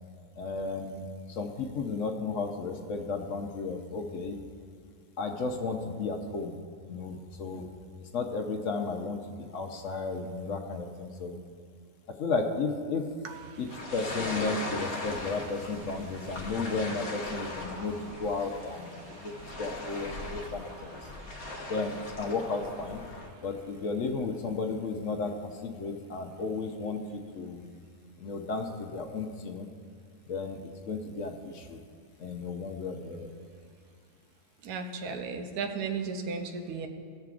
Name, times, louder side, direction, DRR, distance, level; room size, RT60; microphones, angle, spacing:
voice 1, 0.4-4.4 5.2-6.6 6.9-7.7 8.1-9.2 9.5-11.4 12.2-13.1 13.6-19.3 19.6-21.0 21.7-23.0 23.4-27.7 28.2-29.7 30.3-31.8 32.2-33.3, left 4 dB, 60° left, 4 dB, 0.9 m, -34 dB
sound 1, 13.7-23.3, left 2 dB, 45° left, 1.1 m, -39 dB
voice 2, 34.6-36.9, right 5 dB, 80° right, 5 dB, 1.3 m, -34 dB
18.5 x 6.7 x 2.4 m, 2.1 s
omnidirectional pair, 1.6 m